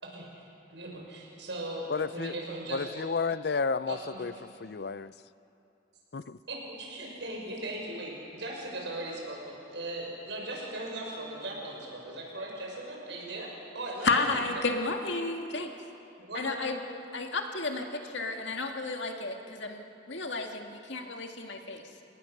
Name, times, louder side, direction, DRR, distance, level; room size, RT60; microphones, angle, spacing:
voice 1, 0.7-1.0 1.4-3.1 3.9-4.2 6.5-14.6 16.2-16.9, right 1 dB, 80° right, 6.2 m, -38 dB
voice 2, 1.9-2.3 2.7-4.3 4.6-5.1 6.1-6.4, left 4 dB, 60° left, 0.5 m, -31 dB
voice 3, 14.0-15.7 16.4-16.8 17.1-19.8 20.1-21.8, left 3 dB, 80° left, 2.0 m, -32 dB
30.0 x 18.5 x 6.7 m
head